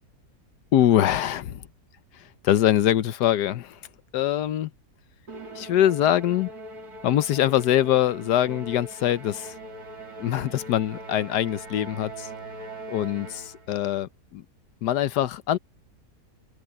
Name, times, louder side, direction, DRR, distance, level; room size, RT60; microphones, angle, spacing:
voice 1, 0.7-1.5 2.1-3.8 4.1-4.7 5.5-6.5 7.0-9.5 10.2-12.3 12.9-14.4 14.8-15.6, left 12 dB, 85° left, 1.4 m, -23 dB
Musical instrument, 5.3-13.8, right 2 dB, 70° right, 4.2 m, -41 dB
open air
omnidirectional pair, 1.7 m